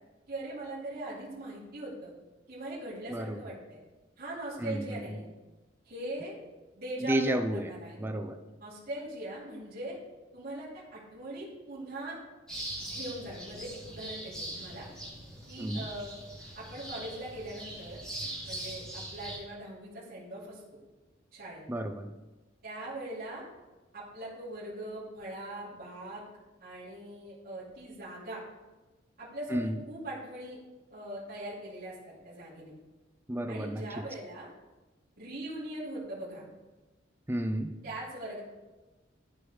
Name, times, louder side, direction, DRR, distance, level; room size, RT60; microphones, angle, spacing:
voice 1, 0.3-2.1 2.5-3.8 4.2-5.3 5.8-6.4 6.7-8.0 8.6-10.0 10.3-12.2 12.9-14.9 15.5-16.1 16.5-18.0 18.4-20.6 21.3-21.6 22.6-23.4 23.9-26.2 26.6-28.4 29.2-30.6 30.9-32.7 33.5-34.5 35.2-36.4 37.8-38.4, right 1 dB, 55° right, -9 dB, 2.8 m, -41 dB
voice 2, 3.1-3.4 4.6-5.0 7.0-7.7 8.0-8.4 15.6-15.9 21.7-22.1 29.5-29.8 33.3-33.8 37.3-37.8, right 1 dB, 10° right, 5 dB, 0.5 m, -31 dB
sound 1, 12.5-19.4, right 1 dB, 5° left, 1.9 m, -41 dB
13.5 x 4.7 x 3.4 m, 1.1 s
head